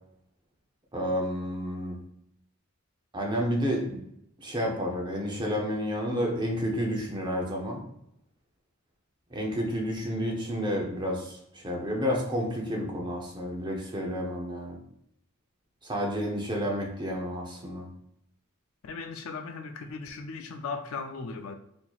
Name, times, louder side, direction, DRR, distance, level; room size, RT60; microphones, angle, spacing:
voice 1, 0.9-2.0 3.1-4.0 4.4-7.8 9.3-14.8 15.8-17.9, equal, 20° right, -1 dB, 0.7 m, -30 dB
voice 2, 18.8-21.6, left 4 dB, 90° left, 6 dB, 0.4 m, -37 dB
4.2 x 2.8 x 2.4 m, 0.77 s
head